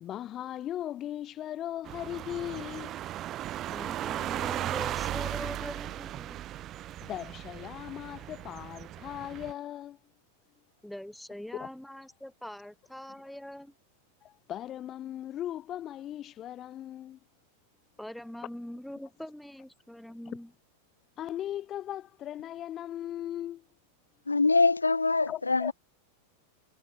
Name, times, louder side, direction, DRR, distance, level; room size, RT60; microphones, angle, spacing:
voice 1, 0.0-2.9 7.0-10.0 11.6-11.7 14.2-17.2 21.2-23.6 25.3-25.7, left 12 dB, 30° left, 1.4 m, -38 dB
sound 1, 1.8-9.5, right 13 dB, 30° right, 1.3 m, -36 dB
voice 2, 3.7-6.4 10.8-13.7 18.0-20.5, left 1 dB, ahead, 3.4 m, -43 dB
voice 3, 24.3-25.7, left 3 dB, 80° left, 0.4 m, -24 dB
figure-of-eight pair, 90°, 0 cm